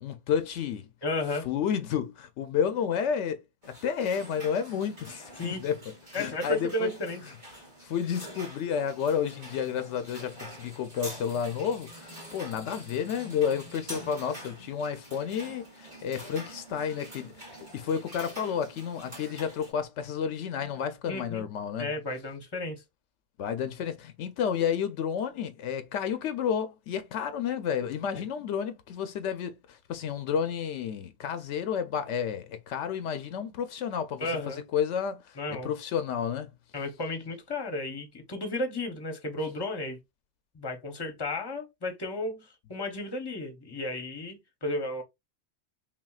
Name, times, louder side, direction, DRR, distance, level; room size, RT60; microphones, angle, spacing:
voice 1, 0.0-0.9 1.4-5.8 6.1-6.9 7.8-21.9 23.4-36.5, left 7 dB, 80° left, 0.9 m, -31 dB
voice 2, 1.0-1.5 5.4-5.6 6.1-7.2 21.1-21.4 21.8-22.8 28.2-28.3 34.2-34.6 35.4-35.7 36.7-40.0 40.5-45.0, left 2 dB, 25° left, 0.8 m, -33 dB
sound 1, 3.6-19.7, right 1 dB, 60° right, 2.8 m, -46 dB
5.8 x 2.3 x 2.3 m
omnidirectional pair, 1.2 m